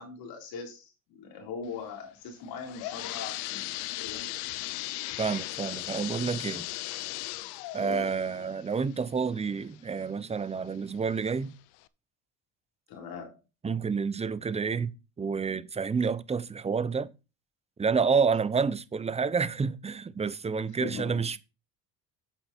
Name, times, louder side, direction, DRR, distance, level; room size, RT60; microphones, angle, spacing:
voice 1, 0.0-3.7 4.0-4.4 7.7-8.1 12.9-13.4 20.8-21.3, left 4 dB, 70° left, 3.7 m, -40 dB
sound 1, 2.4-10.0 10.5-10.6 11.3-11.4 11.8-11.9, left 18 dB, 90° left, 0.7 m, -37 dB
voice 2, 5.2-6.7 7.7-11.5 13.6-17.1 17.8-21.4, right 5 dB, 15° right, 0.7 m, -29 dB
8.3 x 7.9 x 4.3 m
cardioid pair, 100°, 38 cm